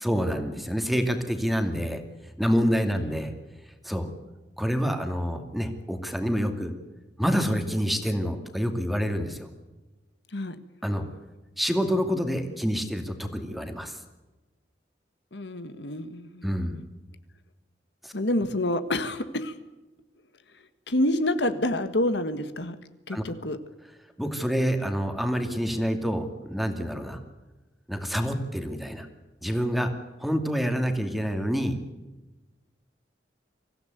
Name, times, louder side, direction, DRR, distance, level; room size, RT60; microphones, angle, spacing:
voice 1, 0.0-2.0 2.4-3.3 3.8-4.1 4.6-6.7 7.2-9.5 10.8-11.0 11.6-14.0 16.4-16.8 18.0-18.1 18.4-18.5 23.1-23.2 24.2-27.2 27.9-29.1 29.4-29.9 30.2-31.8, equal, ahead, 6 dB, 2.4 m, -27 dB
voice 2, 15.3-16.5 18.1-19.5 20.9-22.7 23.1-23.6, left 1 dB, 70° left, 10 dB, 1.6 m, -27 dB
24.5 x 16.0 x 9.3 m, 1.1 s
head